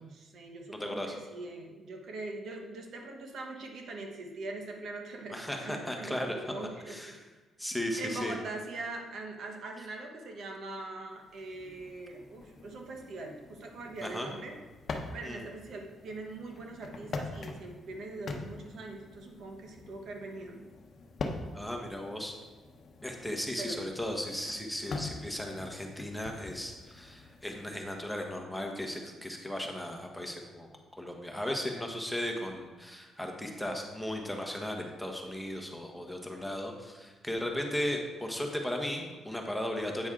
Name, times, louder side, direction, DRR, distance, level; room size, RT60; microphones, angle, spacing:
voice 1, 0.0-7.2 8.0-14.5 15.1-20.6 23.6-24.1, right 2 dB, 65° right, 2 dB, 1.1 m, -42 dB
voice 2, 0.7-1.1 5.3-6.3 6.9-7.2 7.6-8.3 14.0-14.3 15.2-15.4 21.5-22.3 23.0-40.1, left 1 dB, 5° left, 2 dB, 1.1 m, -36 dB
sound 1, 11.2-27.7, left 3 dB, 50° left, 0.8 m, -44 dB
8.6 x 6.1 x 3.7 m, 1.2 s
cardioid pair, 90°, 0 cm